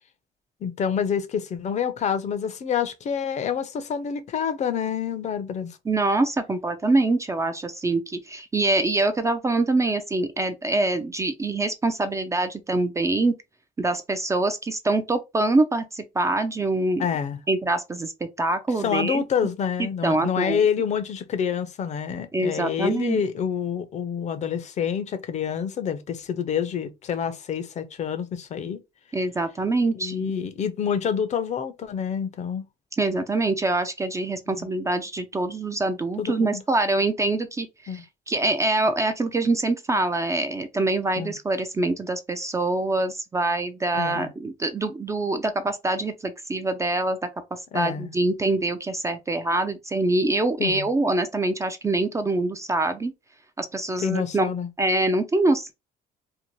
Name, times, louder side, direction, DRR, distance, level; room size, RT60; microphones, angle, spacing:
voice 1, 0.6-5.8 17.0-17.4 18.8-28.8 29.9-32.6 34.5-34.7 36.2-36.6 37.9-38.0 41.2-41.4 43.9-44.3 47.7-48.1 50.6-50.9 54.0-54.7, left 7 dB, 45° left, 0.5 m, -27 dB
voice 2, 5.9-13.3 13.8-17.0 17.5-18.1 18.4-19.2 19.8-20.6 22.3-23.2 29.1-30.3 33.0-47.2 47.7-53.1 53.6-54.5 54.8-55.7, right 2 dB, 20° right, 0.3 m, -24 dB
2.7 x 2.1 x 2.9 m
cardioid pair, 110°, 17 cm